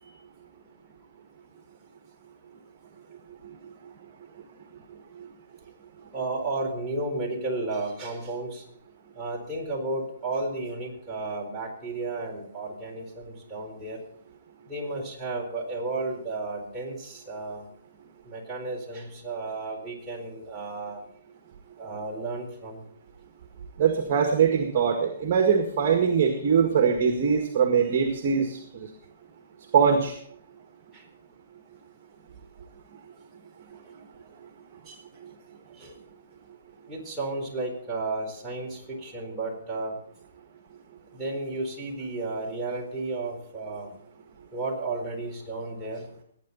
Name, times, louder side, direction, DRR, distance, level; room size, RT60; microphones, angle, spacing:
voice 1, 4.9-5.3 23.8-28.9 29.7-30.2 35.2-35.3, right 6 dB, 45° right, 5 dB, 1.8 m, -23 dB
voice 2, 6.1-8.6 9.1-14.0 14.7-17.7 18.3-21.0 21.8-22.8 30.9-31.0 34.9-35.0 35.7-36.0 36.9-40.0 41.1-43.9 44.5-46.1, right 2 dB, 10° right, -3 dB, 4.3 m, -33 dB
20.0 x 9.3 x 4.1 m, 0.64 s
hypercardioid pair, 135°, 0 cm